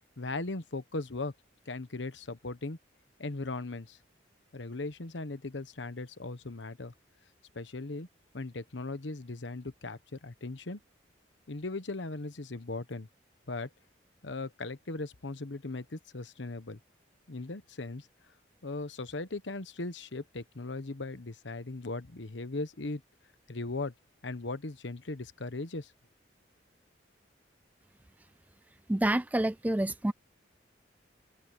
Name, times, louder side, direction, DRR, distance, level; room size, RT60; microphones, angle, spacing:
voice 1, 0.2-1.3 1.7-2.8 3.2-4.0 4.5-6.9 7.5-8.1 8.3-10.8 11.5-13.1 13.5-13.7 14.2-16.8 17.3-18.1 18.6-23.0 23.5-23.9 24.2-25.9, left 2 dB, 80° left, 1.1 m, -38 dB
voice 2, 28.9-30.1, right 1 dB, 10° right, 0.3 m, -28 dB
head